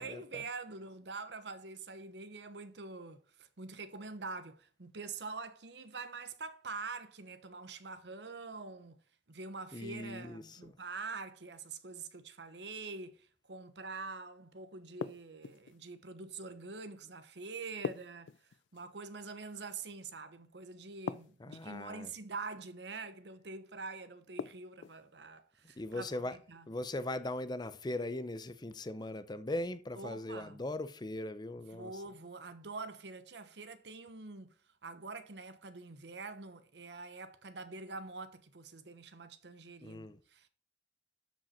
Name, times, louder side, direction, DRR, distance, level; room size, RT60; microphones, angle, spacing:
voice 1, 0.0-9.0 9.3-18.3 18.7-26.7 30.0-30.6 31.7-34.5 34.8-40.5, right 4 dB, 70° right, 1.0 m, -45 dB
voice 2, 9.7-10.7 21.4-22.1 25.8-26.4 26.7-32.0 39.8-40.2, left 1 dB, 25° left, 0.6 m, -39 dB
sound 1, 15.0-15.8 17.8-18.9 21.1-21.8 24.4-25.0, left 6 dB, 90° left, 0.3 m, -41 dB
13.0 x 5.2 x 4.3 m
head